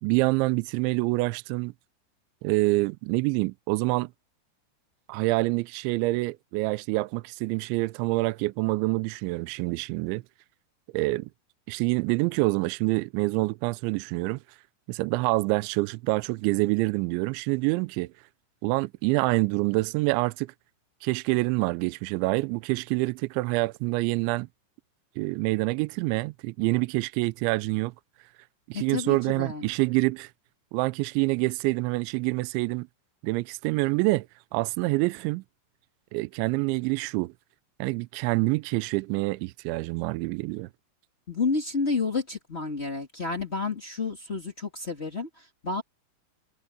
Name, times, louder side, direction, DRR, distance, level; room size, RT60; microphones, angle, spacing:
voice 1, 0.0-1.7 2.4-4.1 5.1-10.2 10.9-11.3 11.7-14.4 14.9-18.1 18.6-20.5 21.0-24.5 25.2-27.9 28.7-30.3 30.7-32.9 33.2-34.3 34.5-35.4 36.1-37.3 37.8-40.7, right 23 dB, 85° right, 2.7 m, -26 dB
voice 2, 28.7-29.7 41.3-45.8, left 4 dB, 40° left, 0.8 m, -30 dB
omnidirectional pair, 5.7 m